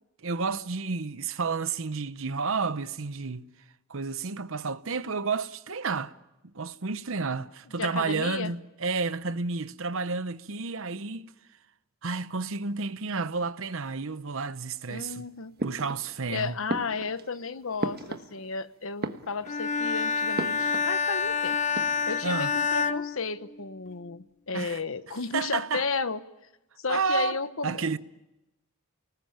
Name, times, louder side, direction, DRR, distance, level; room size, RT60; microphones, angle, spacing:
voice 1, 0.2-3.5 3.9-6.1 6.5-11.3 12.0-15.2 15.6-16.5 22.2-22.5 24.5-24.8 25.3-25.8 26.9-27.4 27.6-28.0, right 4 dB, 65° right, 0.9 m, -31 dB
voice 2, 7.8-8.5 14.9-15.5 16.3-21.6 22.1-26.2 26.8-28.0, left 4 dB, 65° left, 1.1 m, -33 dB
sound 1, 15.6-16.3 16.7-18.6 18.9-19.8 20.4-21.0 21.2-21.3 21.6-22.3, right 2 dB, 50° right, 1.3 m, -35 dB
Bowed string instrument, 19.4-23.9, left 5 dB, 35° left, 0.8 m, -28 dB
30.0 x 20.0 x 8.9 m
head